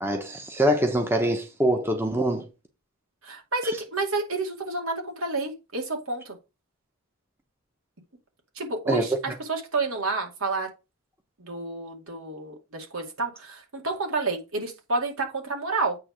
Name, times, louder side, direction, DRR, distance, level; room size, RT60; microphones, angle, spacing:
voice 1, 0.0-2.5 8.9-9.0, right 1 dB, 10° right, 1.0 m, -24 dB
voice 2, 3.2-6.4 8.6-10.7 11.4-16.0, right 3 dB, 70° right, 2.4 m, -30 dB
8.5 x 3.4 x 6.3 m
head